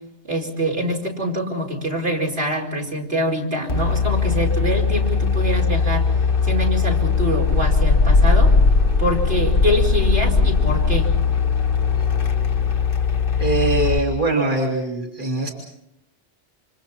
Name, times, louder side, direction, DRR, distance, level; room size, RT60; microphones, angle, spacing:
voice 1, 0.2-6.1 6.4-8.5 9.0-11.1, equal, 65° right, -1 dB, 4.8 m, -24 dB
sound 1, 3.7-14.0, left 4 dB, 55° left, 1.7 m, -19 dB
voice 2, 13.4-15.5, right 2 dB, 50° right, -2 dB, 3.0 m, -22 dB
30.0 x 27.0 x 4.3 m, 0.81 s
omnidirectional pair, 1.1 m